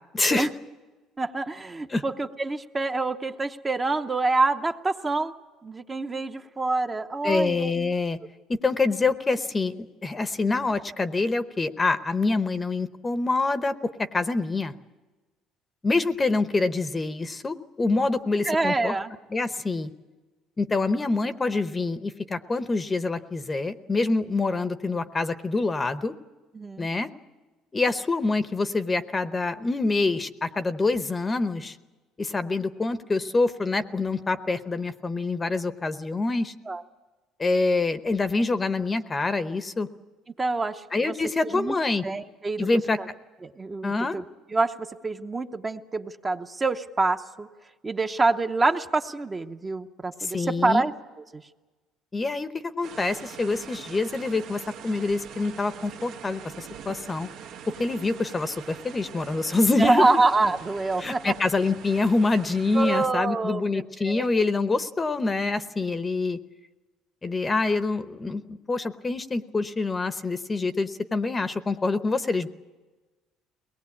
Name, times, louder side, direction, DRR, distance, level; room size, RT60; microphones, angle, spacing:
voice 1, 0.1-0.5 1.9-2.0 7.2-8.2 8.6-13.7 14.1-14.7 15.8-18.9 19.3-19.9 20.6-26.1 26.8-27.1 27.7-31.8 32.2-36.5 37.4-39.9 40.9-42.0 42.6-43.0 43.8-44.1 50.2-50.9 52.1-57.3 57.8-60.1 61.0-66.4 67.2-72.5, left 3 dB, 20° left, 11 dB, 0.8 m, -26 dB
voice 2, 1.2-5.3 5.6-7.9 18.4-19.1 26.5-26.9 36.7-36.8 40.4-41.1 41.4-41.7 42.0-42.7 43.4-44.2 44.5-47.5 47.8-50.9 51.3-51.4 59.7-61.3 62.7-63.6 64.0-64.3, right 3 dB, 20° right, 6 dB, 0.8 m, -26 dB
sound 1, 52.8-63.1, right 8 dB, 80° right, 1.4 m, -43 dB
22.5 x 19.0 x 8.5 m, 1.2 s
cardioid pair, 135°, 0 cm